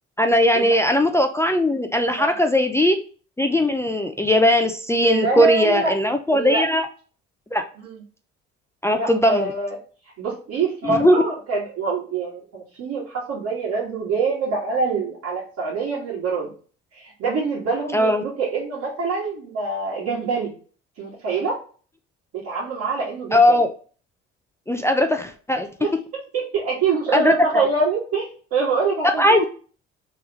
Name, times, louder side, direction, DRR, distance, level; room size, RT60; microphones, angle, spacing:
voice 1, 0.2-3.0 3.4-6.9 7.5-7.6 8.8-9.5 10.8-11.2 17.9-18.2 23.3-23.7 24.7-25.7 27.1-27.6 29.2-29.4, left 1 dB, 10° left, 5 dB, 0.5 m, -19 dB
voice 2, 5.0-5.9 6.3-6.6 7.8-8.0 8.9-9.8 10.2-16.5 16.9-20.6 21.0-21.6 22.4-23.6 25.8-25.9 26.3-29.5, right 4 dB, 60° right, -7 dB, 1.9 m, -25 dB
3.4 x 3.4 x 2.9 m, 0.40 s
hypercardioid pair, 70°, 30 cm